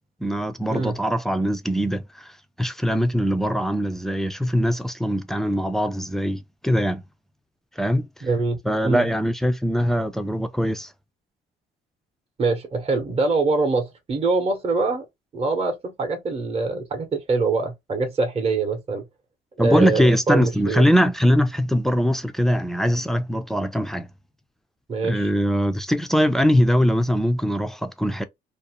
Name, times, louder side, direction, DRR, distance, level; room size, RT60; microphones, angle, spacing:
voice 1, 0.2-2.3 2.6-7.0 7.8-8.3 8.6-10.9 19.6-24.1 25.0-28.2, equal, ahead, 0.4 m, -22 dB
voice 2, 8.2-8.6 8.8-9.1 12.4-15.0 15.3-19.0 19.6-20.8 24.9-25.3, right 3 dB, 30° right, 0.8 m, -24 dB
2.5 x 2.1 x 2.9 m
cardioid pair, 90°, 20 cm